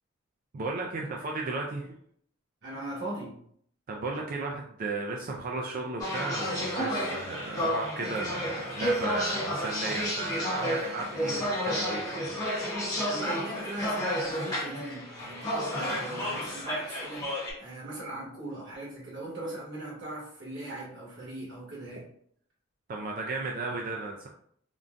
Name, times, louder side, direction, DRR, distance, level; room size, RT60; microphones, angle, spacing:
voice 1, 0.5-1.9 3.9-12.5 22.9-24.3, right 3 dB, 45° right, 0 dB, 0.3 m, -35 dB
voice 2, 2.6-3.3 13.1-17.2 17.6-22.1, right 2 dB, 60° right, -6 dB, 1.3 m, -39 dB
sound 1, 6.0-17.5, equal, 20° left, 0.9 m, -31 dB
3.7 x 2.2 x 2.4 m, 0.65 s
head